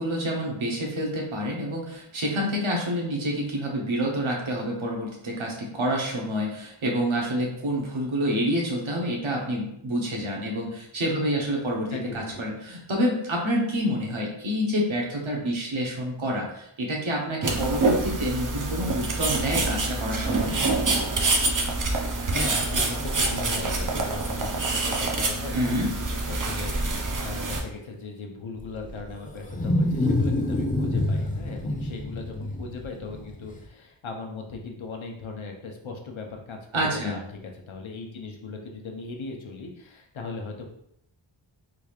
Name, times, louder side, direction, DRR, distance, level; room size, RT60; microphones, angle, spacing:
voice 1, 0.0-20.5 25.5-25.9 36.7-37.2, equal, 75° right, -1 dB, 1.1 m, -28 dB
voice 2, 11.9-12.4 22.2-25.7 26.1-40.7, left 4 dB, 70° left, 2 dB, 0.8 m, -38 dB
sound 1, 17.4-27.6, right 3 dB, 40° right, 0.7 m, -26 dB
Wild animals, 28.6-33.6, left 1 dB, 15° left, 0.6 m, -27 dB
3.8 x 3.2 x 2.4 m, 0.76 s
cardioid pair, 40°, 49 cm